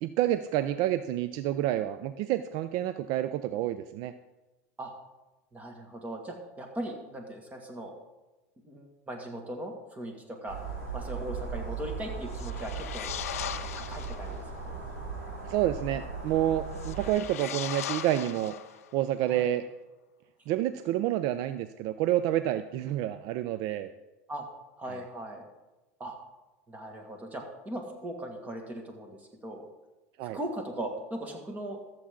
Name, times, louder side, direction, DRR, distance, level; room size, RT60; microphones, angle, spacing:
voice 1, 0.0-4.1 15.5-18.5 18.9-19.6 20.5-23.9 24.9-25.0 30.2-30.4, right 13 dB, 55° right, 12 dB, 0.4 m, -29 dB
voice 2, 5.5-8.0 8.7-10.6 10.9-14.8 19.3-19.5 24.3-24.5 24.8-25.4 26.0-26.2 26.7-29.6 30.3-31.8, right 1 dB, 20° right, 3 dB, 2.0 m, -39 dB
sound 1, 10.5-17.1, right 5 dB, 80° right, 4.1 m, -38 dB
sound 2, 12.3-14.3 16.7-19.0, left 11 dB, 90° left, 0.5 m, -38 dB
13.5 x 7.5 x 3.8 m, 1.1 s
hypercardioid pair, 105°, 8 cm